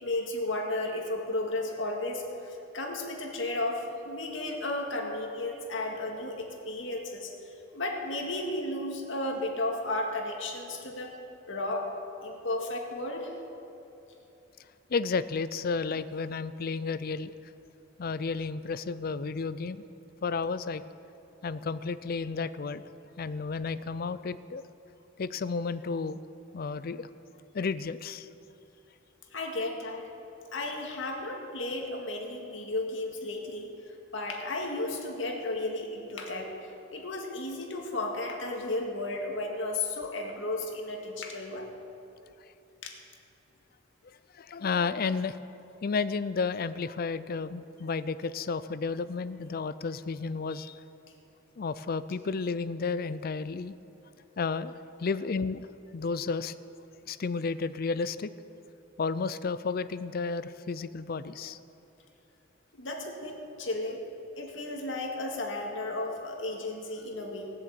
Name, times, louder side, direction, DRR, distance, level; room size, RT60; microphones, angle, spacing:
voice 1, 0.0-7.3 7.7-11.1 11.5-11.9 12.2-13.4 29.3-30.1 30.5-41.7 42.8-43.0 62.7-64.0 64.4-67.5, left 2 dB, 75° left, 1 dB, 2.0 m, -34 dB
voice 2, 14.9-17.3 18.0-19.8 20.2-20.9 21.4-22.9 23.2-24.6 25.2-26.2 26.5-27.1 27.5-28.3 44.0-45.4 45.8-50.8 51.6-53.8 54.4-55.7 55.9-56.5 57.1-58.3 59.0-61.6, left 4 dB, 50° left, 15 dB, 0.5 m, -32 dB
18.0 x 7.7 x 7.7 m, 2.8 s
head